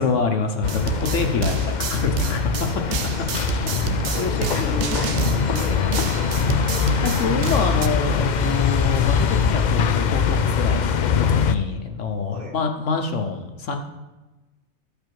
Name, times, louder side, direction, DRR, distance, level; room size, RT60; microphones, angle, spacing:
voice 1, 0.0-2.5 3.6-4.7 5.2-5.4 7.0-13.8, left 4 dB, 65° left, 5 dB, 1.2 m, -26 dB
sound 1, 0.6-11.5, left 6 dB, 85° left, 0.4 m, -22 dB
sound 2, 0.6-7.9, right 6 dB, 65° right, 0.9 m, -29 dB
voice 2, 2.7-3.4 4.1-6.7 12.3-12.6, left 1 dB, 40° right, -2 dB, 2.4 m, -35 dB
Telephone, 5.4-11.3, right 3 dB, 80° right, 2.2 m, -44 dB
13.5 x 5.2 x 4.6 m, 1.1 s
omnidirectional pair, 1.4 m